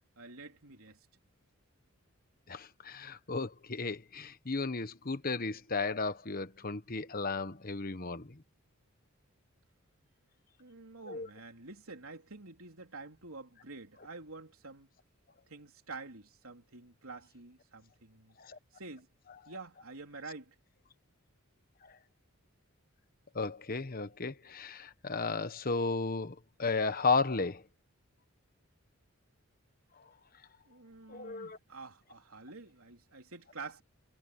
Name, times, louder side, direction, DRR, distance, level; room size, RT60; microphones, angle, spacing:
voice 1, 0.2-1.0 10.6-14.9 15.5-18.4 18.7-19.1 19.5-20.6 30.7-33.8, right 3 dB, 70° right, 3.6 m, -48 dB
voice 2, 2.5-8.4 11.1-11.3 18.4-18.6 23.3-27.6 31.1-31.6, left 4 dB, 40° left, 1.2 m, -34 dB
head